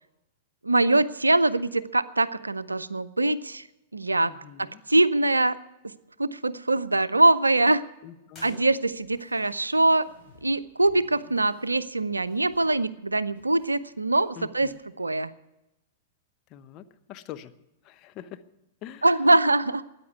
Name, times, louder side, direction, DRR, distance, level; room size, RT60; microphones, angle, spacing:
voice 1, 0.6-3.7 3.9-4.3 4.6-5.6 6.2-7.8 8.4-10.1 10.4-15.3 19.0-19.8, right 2 dB, 85° right, 16 dB, 0.6 m, -23 dB
voice 2, 4.2-4.8 8.0-8.6 14.4-14.7 16.5-17.5 17.8-18.4 18.8-19.1, left 11 dB, 35° left, 10 dB, 0.9 m, -44 dB
sound 1, 8.3-9.3, left 2 dB, 20° left, 7.8 m, -52 dB
sound 2, 8.9-10.5 10.8-12.7 13.0-13.7 14.2-14.3 14.5-14.7, left 3 dB, 85° left, 6.7 m, -58 dB
13.5 x 9.6 x 9.5 m, 0.94 s
figure-of-eight pair, 100°, 0 cm